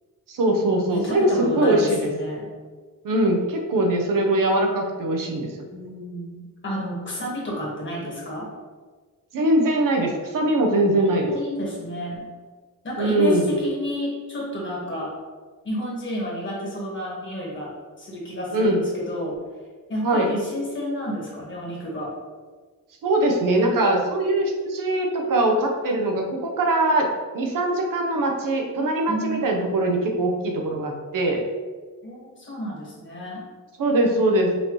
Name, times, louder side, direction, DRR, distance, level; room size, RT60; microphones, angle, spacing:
voice 1, 0.3-2.1 3.0-5.5 9.3-11.3 13.0-13.5 18.5-18.8 20.0-20.3 23.0-27.1 27.3-31.4 33.8-34.5, right 1 dB, 75° right, 1 dB, 0.7 m, -22 dB
voice 2, 0.9-2.5 5.7-8.5 10.9-12.3 12.8-15.1 15.6-17.7 18.0-19.3 19.9-22.1 29.1-29.6 32.0-33.4, equal, 35° left, -5 dB, 1.4 m, -30 dB
5.5 x 2.9 x 3.0 m, 1.4 s
wide cardioid pair, 170°, 33 cm